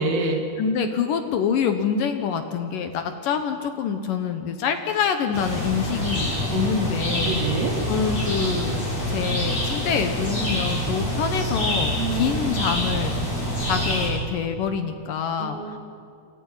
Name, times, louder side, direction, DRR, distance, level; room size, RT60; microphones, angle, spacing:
voice 1, 0.0-0.4 6.5-7.8 12.0-12.6 15.4-15.8, right 4 dB, 65° right, 2 dB, 4.3 m, -28 dB
voice 2, 0.6-7.4 7.9-13.1 13.6-15.6, left 7 dB, 70° left, 7 dB, 2.5 m, -26 dB
sound 1, 5.3-14.1, equal, 40° left, 8.9 m, -26 dB
28.5 x 26.5 x 5.7 m, 2.4 s
omnidirectional pair, 4.6 m